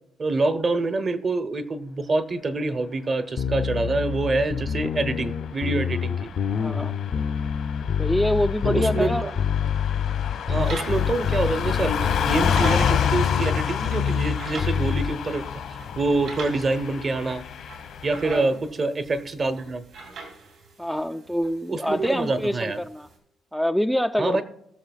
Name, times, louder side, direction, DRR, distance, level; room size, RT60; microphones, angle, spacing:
voice 1, 0.2-6.3 8.6-9.3 10.5-15.4 15.7-17.4 18.0-19.8 21.7-22.8 24.2-24.4, right 3 dB, 40° right, 11 dB, 0.9 m, -26 dB
sound 1, 3.4-15.2, left 7 dB, 60° left, 0.6 m, -26 dB
Car passing by / Truck, 5.4-18.4, left 8 dB, 80° left, 1.1 m, -30 dB
voice 2, 6.6-6.9 8.0-9.2 18.2-18.5 20.8-23.1 23.5-24.4, equal, ahead, 6 dB, 0.3 m, -25 dB
sound 2, 10.6-23.2, right 4 dB, 70° right, 3.7 m, -43 dB
19.0 x 6.5 x 2.4 m, 0.76 s
cardioid pair, 90°, 0 cm